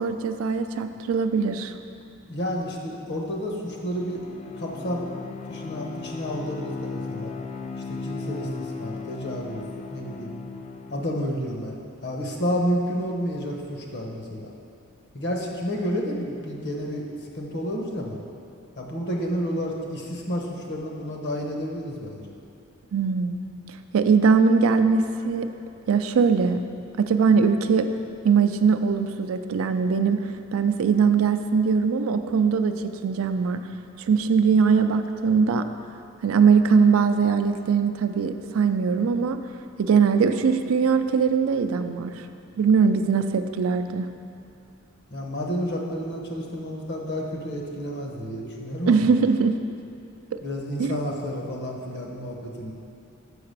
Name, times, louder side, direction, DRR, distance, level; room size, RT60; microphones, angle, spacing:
voice 1, 0.0-1.7 22.9-23.4 23.9-25.5 25.9-26.6 27.0-27.9 28.2-30.2 30.5-33.6 34.0-35.7 36.2-39.4 39.8-42.1 42.6-44.1 48.9-49.6 50.3-50.4 50.8-51.0, right 5 dB, 85° right, 8 dB, 0.4 m, -21 dB
voice 2, 2.3-4.2 4.6-5.0 5.5-7.3 7.9-9.6 9.9-10.3 10.9-14.5 15.1-18.2 18.8-22.3 45.1-49.1 50.4-52.7, equal, 55° left, 0 dB, 1.0 m, -30 dB
Bowed string instrument, 3.7-11.4, left 4 dB, 35° left, 0.3 m, -37 dB
5.7 x 4.9 x 6.6 m, 2.5 s
head